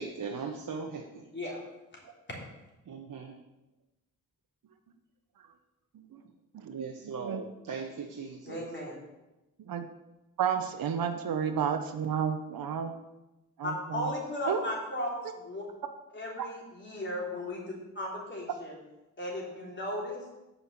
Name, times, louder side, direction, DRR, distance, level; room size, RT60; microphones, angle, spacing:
voice 1, 0.0-1.2 2.9-3.3 6.6-8.6, right 5 dB, 65° right, 1 dB, 1.1 m, -39 dB
voice 2, 6.5-7.4 9.7-9.8 10.4-12.9 13.6-14.1 14.5-14.6, right 7 dB, 80° right, 8 dB, 0.8 m, -31 dB
voice 3, 8.5-8.9 13.6-15.2 15.4-15.6 16.1-18.8 19.2-20.3, left 1 dB, 30° left, -3 dB, 3.6 m, -36 dB
6.9 x 5.7 x 7.4 m, 1.0 s
cardioid pair, 65°, 35 cm